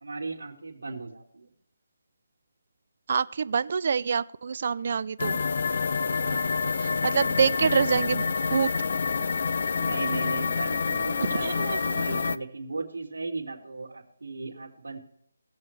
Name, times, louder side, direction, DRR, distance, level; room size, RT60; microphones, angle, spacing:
voice 1, 0.0-1.5 6.2-6.5 9.8-15.0, right 3 dB, 90° right, -4 dB, 2.6 m, -37 dB
voice 2, 3.1-5.4 6.8-8.2 8.5-8.7 11.4-12.0, right 6 dB, 45° right, 18 dB, 0.4 m, -26 dB
sound 1, 5.2-12.4, left 5 dB, 50° left, 0.5 m, -27 dB
19.5 x 7.3 x 3.3 m, 0.70 s
hypercardioid pair, 170°, 0 cm